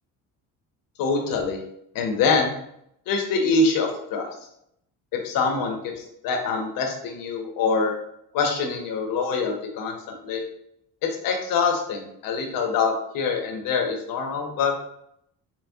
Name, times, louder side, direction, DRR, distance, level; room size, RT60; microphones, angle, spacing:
voice 1, 1.0-1.6 1.9-2.5 3.1-4.3 5.1-7.9 8.3-10.4 11.2-14.7, left 4 dB, 70° left, 3 dB, 0.7 m, -25 dB
4.4 x 2.0 x 2.6 m, 0.74 s
cardioid pair, 105°, 35 cm